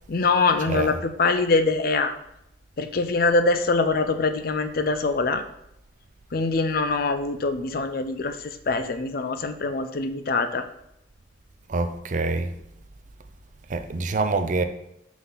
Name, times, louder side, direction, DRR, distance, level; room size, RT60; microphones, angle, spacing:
voice 1, 0.1-2.1 2.8-5.4 6.3-10.7, left 3 dB, 55° left, 0.5 m, -23 dB
voice 2, 11.7-12.5 13.7-14.6, right 3 dB, 45° right, 0.5 m, -25 dB
6.0 x 3.8 x 5.6 m
head